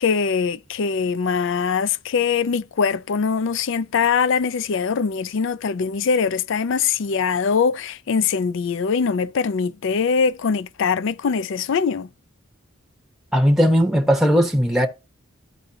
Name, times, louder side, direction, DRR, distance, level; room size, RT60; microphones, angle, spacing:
voice 1, 0.0-12.1, left 5 dB, 60° left, 0.4 m, -22 dB
voice 2, 13.3-14.9, equal, ahead, 0.8 m, -17 dB
14.0 x 4.9 x 2.7 m
head